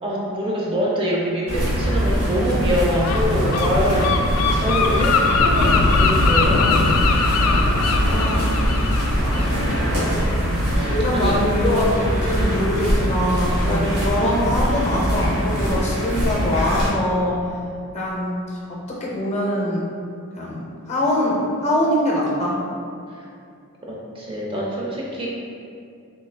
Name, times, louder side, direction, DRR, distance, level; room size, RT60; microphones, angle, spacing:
voice 1, 0.0-4.1 4.6-6.7 10.7-11.4 12.4-12.5 13.4-13.9 23.1-23.3 23.9-25.3, equal, 25° right, -4 dB, 0.4 m, -25 dB
sound 1, 1.5-16.9, equal, 85° right, 1.4 m, -22 dB
Gull seagull, 3.0-10.5, left 3 dB, 75° left, 0.3 m, -21 dB
voice 2, 8.0-8.5 9.1-9.5 10.8-17.4 17.9-18.4 18.7-19.9 20.3-22.6, left 1 dB, 30° left, -4 dB, 0.6 m, -23 dB
3.4 x 3.1 x 3.2 m, 2.4 s
head